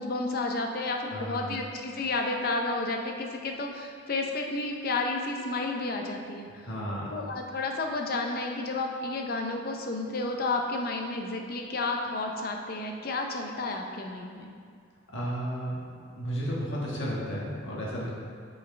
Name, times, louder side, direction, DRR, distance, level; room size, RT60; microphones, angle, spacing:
voice 1, 0.0-6.6 7.1-14.5, left 3 dB, 45° left, 2 dB, 0.6 m, -31 dB
voice 2, 1.1-1.5 6.6-7.1 15.1-15.7 16.1-18.1, equal, 65° left, -5 dB, 1.6 m, -33 dB
8.4 x 4.8 x 3.3 m, 2.1 s
head